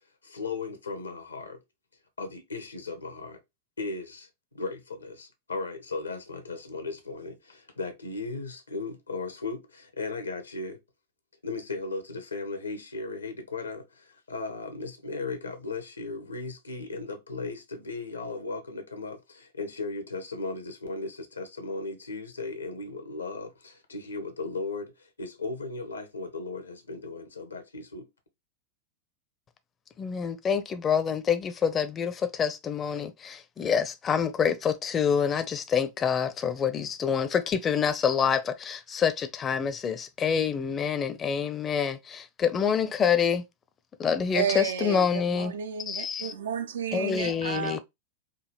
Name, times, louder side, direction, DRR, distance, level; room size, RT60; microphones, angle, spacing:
voice 1, 0.2-1.6 2.2-3.4 3.8-4.3 4.5-10.8 11.4-28.1, left 3 dB, 80° left, 0.9 m, -36 dB
voice 2, 30.0-43.4 44.0-45.5 45.9-46.3 46.9-47.8, left 7 dB, 25° left, 0.6 m, -27 dB
voice 3, 44.3-47.8, right 8 dB, 65° right, 0.6 m, -32 dB
5.0 x 2.4 x 3.0 m
figure-of-eight pair, 90°, 0 cm